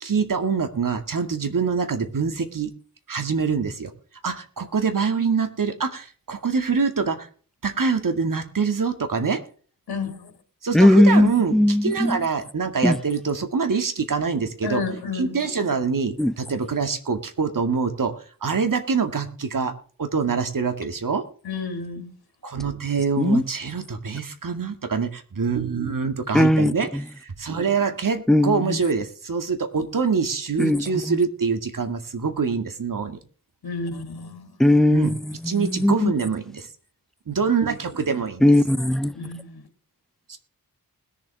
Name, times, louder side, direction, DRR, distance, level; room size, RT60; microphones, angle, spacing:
voice 1, 0.0-2.7 3.1-3.9 4.2-7.3 7.6-9.4 10.6-14.8 15.1-18.1 18.4-21.2 22.4-33.2 34.9-35.1 35.4-36.7 37.3-38.4 40.3-40.4, right 5 dB, 60° right, 2.1 m, -25 dB
voice 2, 9.9-10.3 14.6-15.4 21.4-22.1 33.6-34.5 39.1-39.6, left 4 dB, 85° left, 2.4 m, -31 dB
voice 3, 10.7-12.2 12.8-13.0 16.2-16.3 23.2-23.4 26.3-26.7 28.3-28.6 30.6-31.2 34.6-35.2 35.6-36.1 38.4-39.1, left 1 dB, ahead, 0.5 m, -18 dB
20.5 x 7.3 x 3.5 m
cardioid pair, 65°, 37 cm